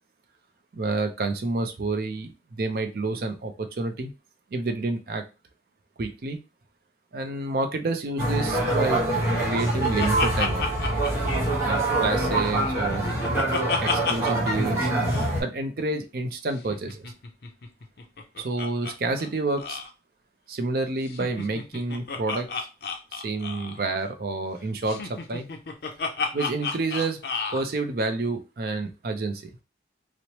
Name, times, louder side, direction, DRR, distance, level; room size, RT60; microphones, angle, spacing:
voice 1, 0.7-4.1 4.5-5.2 6.0-6.4 7.1-9.0 9.5-10.9 11.6-13.1 13.8-14.9 15.4-17.1 18.4-19.8 20.5-22.5 23.1-25.5 26.3-27.2 27.5-29.5, right 3 dB, 55° right, 6 dB, 0.4 m, -29 dB
sound 1, 8.2-15.4, right 1 dB, 15° right, 1.0 m, -25 dB
Laughter, 9.1-12.1 12.4-14.5 14.8-14.9 15.1-15.3 16.6-18.9 19.2-19.3 19.6-19.9 21.0-23.8 24.9-27.6, left 4 dB, 60° left, 0.5 m, -32 dB
3.0 x 2.0 x 2.8 m, 0.29 s
head